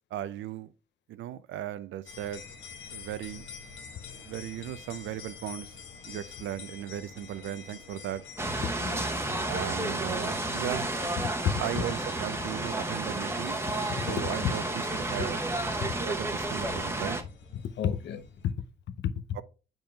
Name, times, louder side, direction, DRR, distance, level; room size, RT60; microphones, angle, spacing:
voice 1, 0.1-0.7 1.1-2.4 2.9-3.5 4.2-5.8 6.0-8.2 9.4-10.9 11.6-13.6 14.1-15.4 16.0-17.2 19.3-19.4, right 12 dB, 75° right, 0.5 m, -36 dB
sound 1, 2.0-18.5, left 5 dB, 80° left, 1.3 m, -48 dB
sound 2, 8.4-17.2, right 2 dB, 10° right, 0.8 m, -31 dB
voice 2, 8.6-9.1 11.2-11.8 13.9-14.5 15.8-16.0 17.5-18.6 18.9-19.2, left 9 dB, 65° left, 0.6 m, -32 dB
8.6 x 5.3 x 2.3 m
cardioid pair, 90°, 20 cm